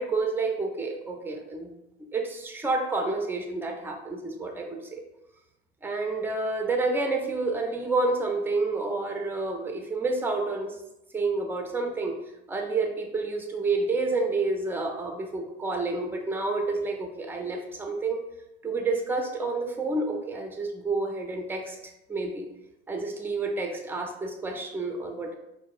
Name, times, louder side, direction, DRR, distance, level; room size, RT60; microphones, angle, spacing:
voice 1, 0.0-1.7 2.1-5.0 5.8-10.8 11.1-12.1 12.5-18.2 18.6-21.8 22.1-22.5 22.9-25.3, right 3 dB, 5° right, 2 dB, 0.5 m, -29 dB
4.5 x 2.1 x 2.4 m, 0.89 s
figure-of-eight pair, 60°, 38 cm